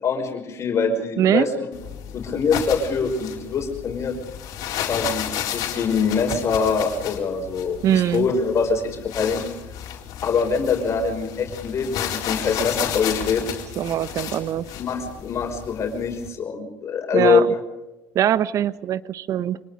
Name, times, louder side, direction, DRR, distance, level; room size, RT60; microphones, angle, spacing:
voice 1, 0.0-1.7 2.1-4.2 4.9-9.4 10.2-13.4 14.8-17.4, left 5 dB, 45° left, 3 dB, 5.6 m, -24 dB
voice 2, 1.2-1.5 7.8-8.3 13.8-14.7 17.1-17.5 18.1-19.6, right 10 dB, 55° right, 16 dB, 1.0 m, -22 dB
sound 1, 1.7-16.3, left 10 dB, 65° left, 4.2 m, -32 dB
26.0 x 19.5 x 5.1 m, 1.1 s
supercardioid pair, 80°, 7 cm